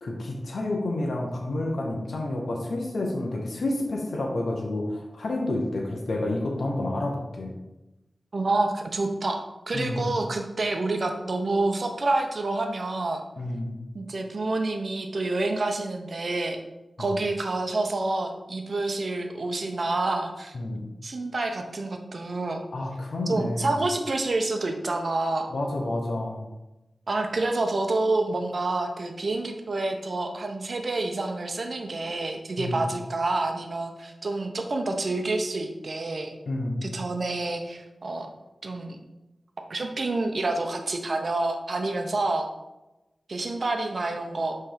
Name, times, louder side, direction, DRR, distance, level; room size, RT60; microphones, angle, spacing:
voice 1, 0.0-7.5 9.7-10.1 13.4-13.7 17.0-17.1 20.5-20.8 22.7-23.7 25.5-26.5 32.6-32.8 36.5-36.8, left 2 dB, 80° left, 0 dB, 1.0 m, -29 dB
voice 2, 8.3-13.2 13.9-16.6 17.0-20.5 21.0-22.6 23.3-25.5 27.1-36.3 36.8-38.3 38.6-39.0 39.7-42.5 43.3-44.5, right 2 dB, 65° right, 4 dB, 0.8 m, -28 dB
5.7 x 3.4 x 5.0 m, 1.0 s
cardioid pair, 50°, 0 cm